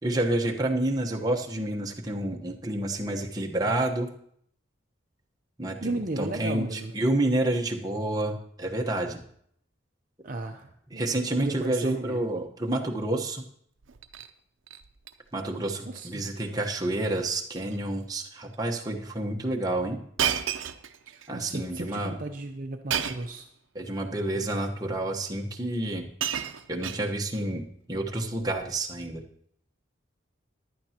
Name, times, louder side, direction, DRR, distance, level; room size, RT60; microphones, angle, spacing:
voice 1, 0.0-4.1 5.6-9.2 10.9-13.4 15.3-20.0 21.3-22.2 23.7-26.1 26.7-27.6 27.9-29.2, right 1 dB, 20° right, 0 dB, 1.1 m, -29 dB
voice 2, 5.8-6.9 10.2-11.1 11.4-12.2 15.9-16.6 21.1-23.5, right 2 dB, 45° right, 4 dB, 0.6 m, -35 dB
Shatter, 13.8-14.3 14.7-15.1 15.5-15.7 16.0-16.1 17.0-17.2 17.5-17.8 18.5-18.6 20.2-21.3 22.9-23.4 24.4-24.5 25.5-25.6 25.9-27.4 28.4-28.6, right 9 dB, 80° right, 0.6 m, -32 dB
15.0 x 11.0 x 2.9 m, 0.67 s
head